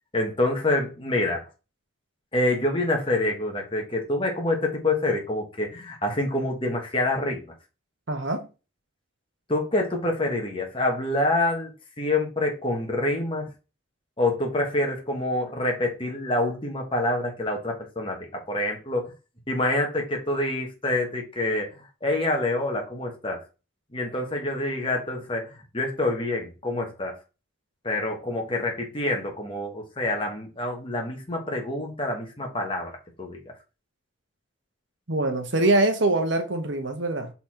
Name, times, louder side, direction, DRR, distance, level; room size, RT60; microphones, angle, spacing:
voice 1, 0.1-1.4 2.3-7.5 9.5-11.7 12.0-13.5 14.2-19.1 19.5-21.7 22.0-23.4 23.9-27.2 27.8-33.4, left 2 dB, 25° left, 1.7 m, -26 dB
voice 2, 8.1-8.5 35.1-37.3, right 2 dB, 65° right, 1.3 m, -24 dB
5.6 x 4.3 x 4.4 m
head